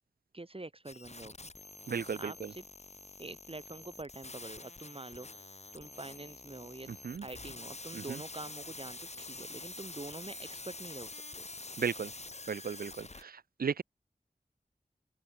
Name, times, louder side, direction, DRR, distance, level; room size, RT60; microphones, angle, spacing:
voice 1, 0.3-1.3 2.2-2.6 3.2-6.9 7.2-11.4, right 2 dB, 35° right, 1.8 m, -46 dB
sound 1, 0.9-13.2, left 3 dB, 45° left, 1.4 m, -47 dB
voice 2, 1.9-2.5 6.9-7.2 7.9-8.2 11.8-12.1 12.5-13.8, right 6 dB, 70° right, 0.4 m, -35 dB
open air
wide cardioid pair, 55°, 16 cm